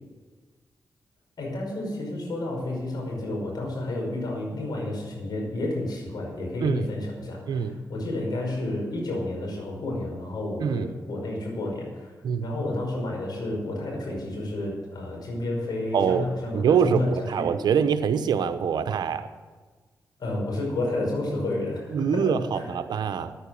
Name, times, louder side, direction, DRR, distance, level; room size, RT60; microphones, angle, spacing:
voice 1, 1.4-12.1 12.4-17.5 20.2-22.6, left 2 dB, 65° left, -1 dB, 5.4 m, -31 dB
voice 2, 7.5-7.8 10.6-10.9 12.2-12.5 15.9-16.3 16.5-19.3 21.9-23.3, right 7 dB, 75° right, 10 dB, 0.9 m, -24 dB
10.5 x 9.2 x 8.7 m, 1.4 s
supercardioid pair, 50°, 7 cm